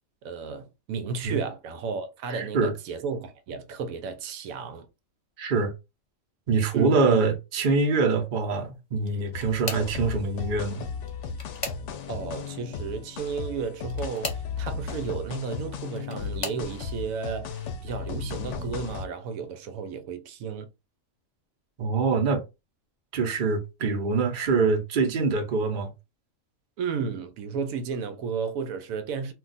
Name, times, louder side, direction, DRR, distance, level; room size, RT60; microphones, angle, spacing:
voice 1, 0.2-4.9 6.7-7.2 12.1-20.7 26.8-29.3, right 5 dB, 85° right, 1.0 m, -33 dB
voice 2, 2.3-2.7 5.4-5.7 6.5-10.8 21.8-22.4 23.1-25.9, right 4 dB, 45° right, 0.8 m, -24 dB
sound 1, 9.0-10.0 11.0-12.2 13.8-14.5 15.6-16.7 17.4-17.8 18.2-18.3 19.7-19.8, left 2 dB, 30° left, 0.7 m, -37 dB
sound 2, 9.3-19.1, left 5 dB, 70° left, 0.8 m, -35 dB
2.5 x 2.3 x 3.9 m
omnidirectional pair, 1.4 m